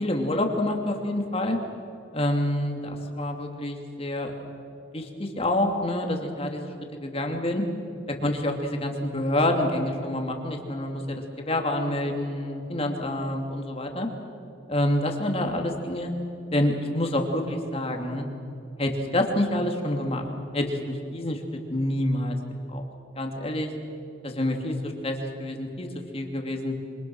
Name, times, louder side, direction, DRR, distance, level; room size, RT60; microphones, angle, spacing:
voice 1, 0.0-1.6 2.1-4.3 4.9-7.6 8.2-14.1 14.7-16.1 16.5-18.2 18.8-20.2 20.5-21.4 21.7-22.3 22.7-22.9 23.2-23.7 24.2-25.9 26.1-26.7, left 1 dB, 30° left, 3 dB, 3.0 m, -27 dB
27.0 x 26.0 x 6.3 m, 2.7 s
head